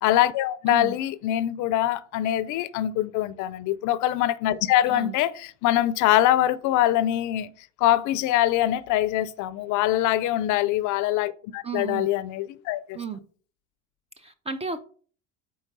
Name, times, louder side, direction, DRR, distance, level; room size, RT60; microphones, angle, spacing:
voice 1, 0.0-7.5 7.8-13.0, left 13 dB, 50° left, 0.5 m, -23 dB
voice 2, 11.6-12.1 12.9-13.2 14.2-14.8, right 5 dB, 15° right, 0.3 m, -33 dB
4.7 x 4.5 x 5.3 m
supercardioid pair, 105°, 39 cm